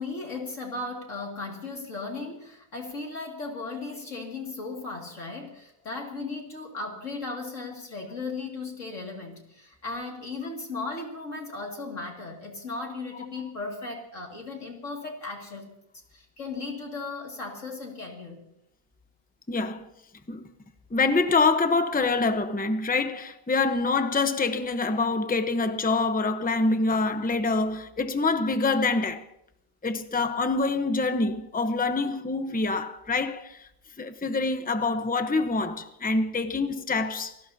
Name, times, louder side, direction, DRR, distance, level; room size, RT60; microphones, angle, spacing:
voice 1, 0.0-15.7 16.1-18.4, left 3 dB, 50° left, 2.8 m, -36 dB
voice 2, 19.5-19.9 20.3-20.5 20.9-29.2 29.8-33.7 34.0-37.3, left 3 dB, 10° left, 0.6 m, -25 dB
28.5 x 18.0 x 2.8 m
omnidirectional pair, 1.7 m